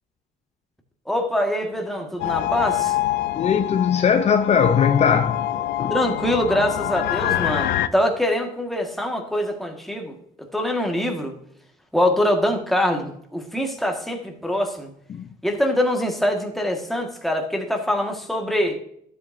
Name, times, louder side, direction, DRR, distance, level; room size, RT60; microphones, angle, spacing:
voice 1, 1.1-3.0 5.9-10.2 10.5-11.3 11.9-14.9 15.4-18.8, left 1 dB, ahead, 1.8 m, -24 dB
sound 1, 2.2-7.9, left 13 dB, 80° left, 0.6 m, -25 dB
voice 2, 3.3-5.4 5.8-6.0 15.1-15.3, left 7 dB, 40° left, 0.7 m, -19 dB
12.5 x 7.8 x 2.7 m
cardioid pair, 110°, 17 cm